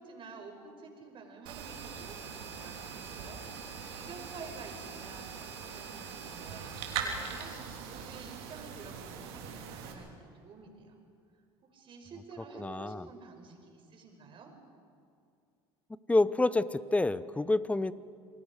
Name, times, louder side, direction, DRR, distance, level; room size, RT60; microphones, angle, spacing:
voice 1, 0.0-11.0 11.6-14.5, right 4 dB, 40° right, 3 dB, 5.3 m, -50 dB
sound 1, 1.5-9.9, right 6 dB, 75° right, 3.3 m, -41 dB
voice 2, 12.5-13.0 16.1-17.9, left 2 dB, 10° left, 17 dB, 0.7 m, -28 dB
28.5 x 20.0 x 5.1 m, 2.4 s
hypercardioid pair, 85°, 13 cm